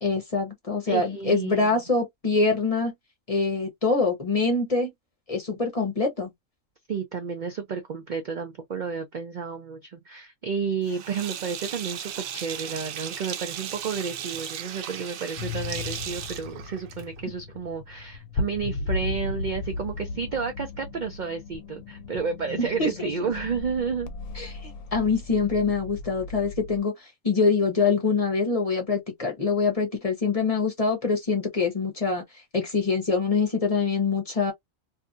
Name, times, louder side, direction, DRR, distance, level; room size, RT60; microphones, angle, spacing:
voice 1, 0.0-2.9 3.3-4.9 5.3-6.3 22.6-23.1 24.3-32.2 32.5-34.5, left 4 dB, 35° left, 0.8 m, -25 dB
voice 2, 0.9-1.8 6.9-24.1, right 6 dB, 60° right, 0.5 m, -31 dB
Sink (filling or washing), 10.9-17.3, right 9 dB, 85° right, 1.0 m, -36 dB
sound 1, 15.4-26.8, left 3 dB, 85° left, 1.0 m, -36 dB
2.6 x 2.3 x 2.4 m
omnidirectional pair, 1.4 m